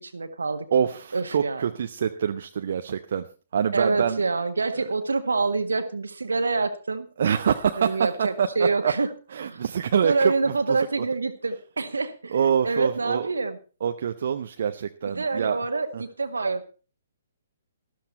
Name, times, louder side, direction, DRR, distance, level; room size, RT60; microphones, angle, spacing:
voice 1, 0.0-0.7 1.1-1.7 3.7-7.1 7.8-9.1 9.4-9.6 10.0-12.4 12.6-13.6 15.0-16.7, right 3 dB, 70° right, 10 dB, 1.6 m, -26 dB
voice 2, 0.7-3.3 3.5-4.2 4.8-4.9 7.2-8.9 9.3-10.8 12.3-13.3 13.8-15.6 15.9-16.0, right 8 dB, 50° right, 7 dB, 0.8 m, -25 dB
13.0 x 13.0 x 4.2 m, 0.35 s
figure-of-eight pair, 125°, 0 cm